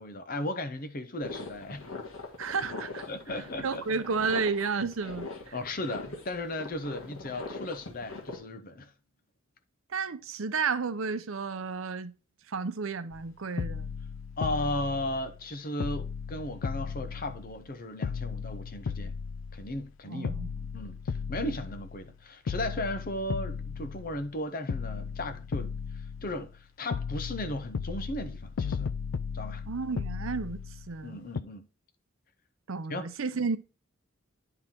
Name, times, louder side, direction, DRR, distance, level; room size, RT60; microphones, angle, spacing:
voice 1, 0.0-1.8 3.1-3.8 5.5-8.9 14.4-19.1 19.5-20.3 20.7-28.9 29.3-29.6 31.0-31.7 32.9-33.1, left 1 dB, 45° left, 0.8 m, -36 dB
sound 1, 1.2-8.4, left 3 dB, 80° left, 1.8 m, -42 dB
voice 2, 2.4-3.1 3.6-5.3 9.9-12.1 12.5-13.9 20.1-20.5 29.7-30.6 30.9-31.2 32.7-33.6, right 5 dB, 75° right, 0.6 m, -32 dB
sound 2, 13.1-13.3 13.6-15.5 15.8-17.7 18.0-19.9 20.2-22.2 22.5-24.4 24.7-26.6 26.9-31.0 31.4-31.5, left 6 dB, 60° left, 0.3 m, -36 dB
9.9 x 3.8 x 4.4 m
head